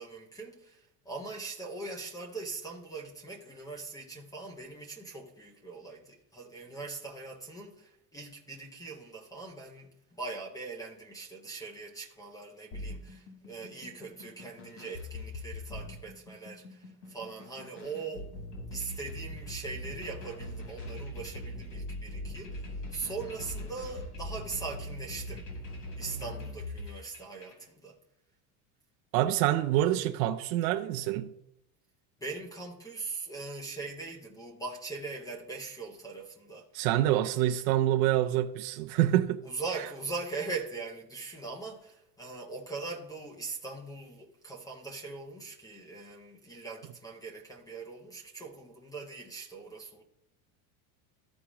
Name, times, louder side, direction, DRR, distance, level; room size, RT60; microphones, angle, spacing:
voice 1, 0.0-18.3 18.7-22.6 22.9-25.4 26.0-28.0 32.2-36.7 39.4-50.0, right 4 dB, 10° left, 0.4 m, -41 dB
sound 1, 12.7-27.7, left 1 dB, 50° left, 2.7 m, -41 dB
voice 2, 29.1-31.3 36.7-39.4 39.8-39.9, right 13 dB, 65° right, 0.6 m, -26 dB
14.0 x 4.8 x 2.9 m
cardioid pair, 175°, 43 cm